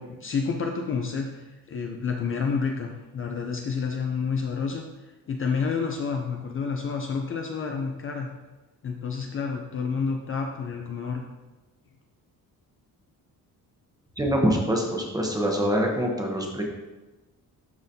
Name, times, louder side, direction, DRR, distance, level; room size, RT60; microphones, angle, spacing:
voice 1, 0.0-8.3 8.8-11.3, left 5 dB, 35° left, 2 dB, 0.5 m, -29 dB
voice 2, 14.2-16.6, equal, 10° right, 0 dB, 0.9 m, -25 dB
11.5 x 4.0 x 2.7 m, 1.1 s
cardioid pair, 165°, 36 cm